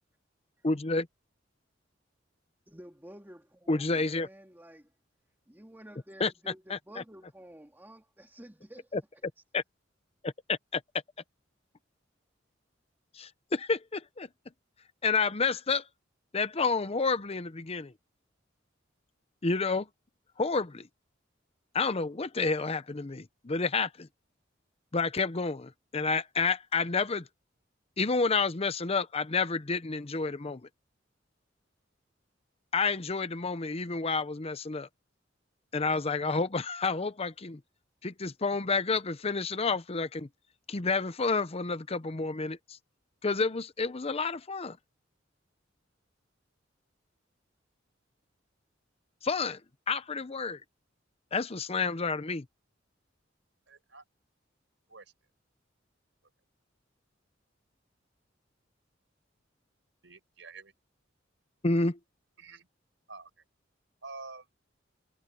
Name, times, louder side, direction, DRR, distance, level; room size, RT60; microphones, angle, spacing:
voice 1, 0.6-1.1 3.7-4.3 6.2-6.3 6.7-6.8 8.9-9.0 9.5-9.6 10.2-10.8 13.1-14.3 15.0-15.9 16.3-17.9 19.4-19.9 20.4-20.9 21.7-24.1 24.9-27.3 28.0-30.6 32.7-34.9 35.7-37.6 38.0-40.3 40.7-42.8 43.2-44.8 49.2-49.6 49.9-50.6 51.3-52.4 61.6-62.0, left 4 dB, 30° left, 0.8 m, -29 dB
voice 2, 2.7-4.9 5.5-9.2, equal, 10° right, 2.4 m, -51 dB
voice 3, 53.7-54.0 54.9-55.1 60.0-60.7 62.4-62.7 63.1-63.3 64.0-64.5, right 4 dB, 70° right, 5.6 m, -47 dB
head